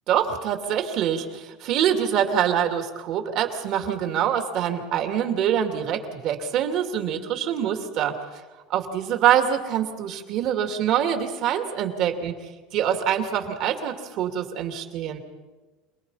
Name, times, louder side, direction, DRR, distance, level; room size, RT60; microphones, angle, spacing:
voice 1, 0.1-8.1 8.7-12.4 12.7-15.2, right 9 dB, 45° right, 5 dB, 2.7 m, -25 dB
27.5 x 20.5 x 5.7 m, 1.2 s
cardioid pair, 155°, 0 cm